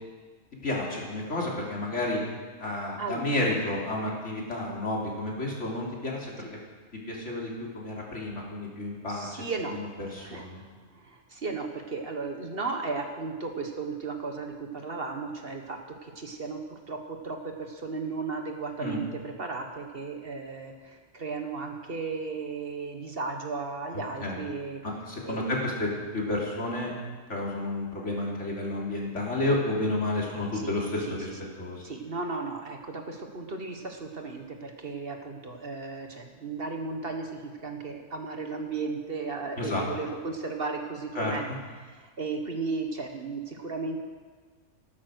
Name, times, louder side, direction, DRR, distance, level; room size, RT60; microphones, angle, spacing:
voice 1, 0.6-2.2 2.6-6.3 7.1-9.4 9.7-10.6 18.8-19.0 23.9-24.4 24.8-26.9 27.3-31.3 31.6-31.8 39.6-39.8 41.2-41.3, left 2 dB, 70° left, -3 dB, 3.5 m, -31 dB
voice 2, 3.0-3.5 9.1-9.8 10.1-10.4 10.9-24.8 25.2-25.6 30.5-30.7 31.1-31.2 31.8-41.4 41.8-44.0, right 4 dB, 50° right, 4 dB, 1.6 m, -35 dB
14.0 x 12.5 x 6.4 m, 1.4 s
omnidirectional pair, 1.3 m